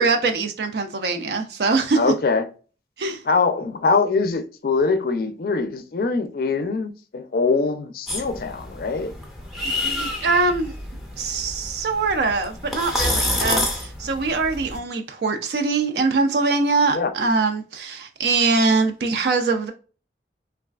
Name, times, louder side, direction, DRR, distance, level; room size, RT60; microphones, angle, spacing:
voice 1, 0.0-2.0 3.0-3.2 9.6-10.7 11.2-19.7, right 3 dB, 65° right, 0.4 m, -23 dB
voice 2, 1.9-2.5 3.3-9.1 16.9-17.1, left 4 dB, 55° left, 0.4 m, -23 dB
sound 1, 8.1-14.8, left 1 dB, ahead, 0.5 m, -28 dB
3.1 x 2.4 x 2.3 m
head